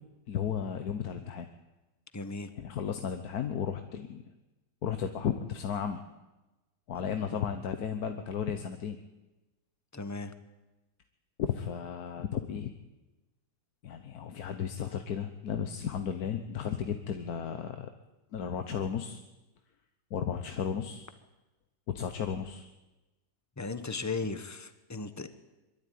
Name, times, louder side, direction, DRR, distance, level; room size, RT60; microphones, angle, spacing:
voice 1, 0.3-1.5 2.6-4.2 4.8-6.0 6.9-9.0 11.4-12.7 13.8-17.9 18.3-19.2 20.1-21.1 21.9-22.7, left 8 dB, 65° left, 8 dB, 1.4 m, -34 dB
voice 2, 2.1-2.5 7.0-7.2 9.9-10.3 23.6-25.3, left 3 dB, 15° left, 11 dB, 0.9 m, -36 dB
22.5 x 13.0 x 9.4 m, 1.1 s
omnidirectional pair, 1.8 m